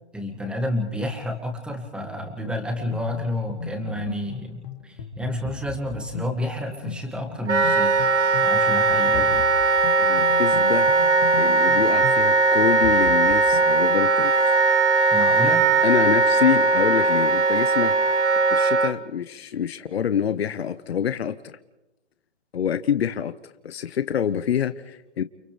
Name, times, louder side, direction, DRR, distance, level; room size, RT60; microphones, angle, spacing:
voice 1, 0.1-8.1 8.4-9.4 15.1-15.7, left 1 dB, 5° right, 2.1 m, -30 dB
sound 1, 2.4-13.7, left 7 dB, 40° left, 2.5 m, -37 dB
Wind instrument woodwind instrument, 7.5-18.9, right 3 dB, 85° right, 1.7 m, -19 dB
voice 2, 10.0-10.9 11.4-14.6 15.8-18.0 18.5-21.6 22.5-23.3 23.6-25.2, left 8 dB, 60° left, 1.1 m, -26 dB
30.0 x 29.0 x 3.4 m
hypercardioid pair, 155°, 34 cm